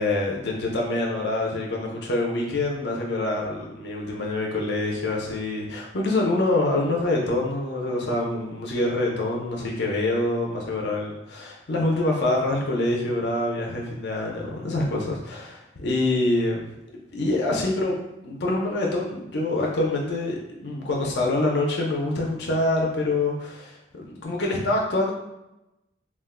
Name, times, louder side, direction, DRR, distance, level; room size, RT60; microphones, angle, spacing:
voice 1, 0.0-16.7 17.1-18.0 18.2-25.1, left 2 dB, 65° left, -1 dB, 0.6 m, -25 dB
2.4 x 2.2 x 3.6 m, 0.89 s
head